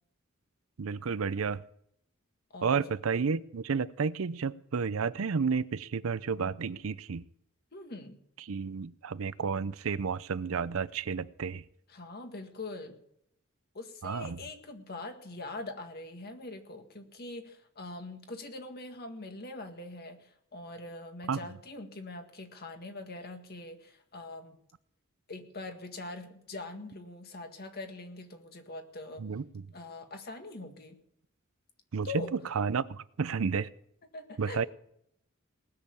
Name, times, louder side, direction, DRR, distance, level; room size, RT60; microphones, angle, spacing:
voice 1, 0.8-1.6 2.6-7.3 8.5-11.6 14.0-14.4 21.3-21.4 29.2-29.7 31.9-32.9 33.2-33.7 34.4-34.6, right 5 dB, 75° right, 17 dB, 0.5 m, -31 dB
voice 2, 2.5-2.8 7.7-8.2 11.9-13.0 13.7-24.6 25.3-29.3 29.7-31.0 32.0-32.3 34.1-34.6, left 2 dB, 50° left, 6 dB, 1.9 m, -43 dB
19.0 x 6.8 x 8.4 m, 0.74 s
head